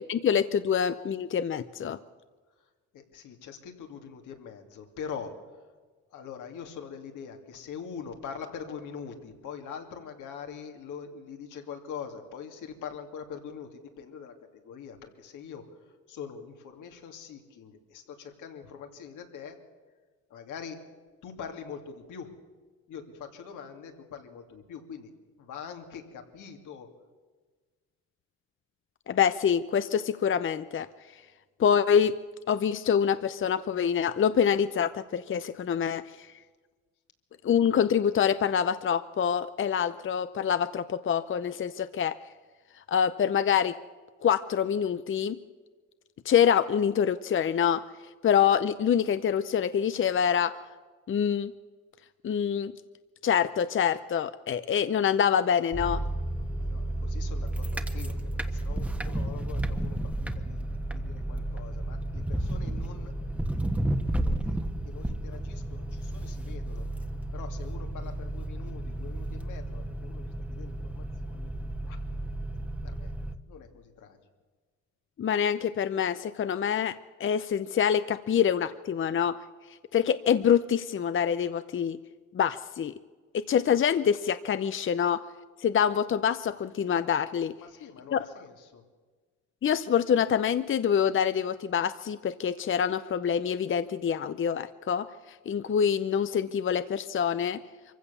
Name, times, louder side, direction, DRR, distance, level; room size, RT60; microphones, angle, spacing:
voice 1, 0.1-2.0 29.1-30.9 31.6-32.1 32.5-36.3 37.4-42.2 42.9-43.8 44.2-45.4 46.2-47.8 48.2-50.5 51.1-51.5 52.2-52.7 53.2-56.0 75.2-79.4 79.9-82.0 82.3-82.9 83.3-85.2 85.6-87.5 88.1-88.3 89.6-97.6, left 8 dB, 40° left, 13 dB, 0.7 m, -26 dB
voice 2, 2.9-5.3 6.1-19.6 20.3-20.8 21.2-22.3 22.9-25.1 25.4-26.9 56.6-60.6 60.9-63.1 63.6-63.7 64.2-64.6 64.8-66.8 67.3-71.5 71.8-72.0 72.8-73.1 73.5-74.2 87.6-88.8, left 7 dB, 85° left, 4 dB, 2.7 m, -43 dB
sound 1, 55.7-73.3, right 1 dB, 5° right, 1.3 m, -32 dB
24.0 x 15.5 x 7.0 m, 1.4 s
cardioid pair, 90°, 30 cm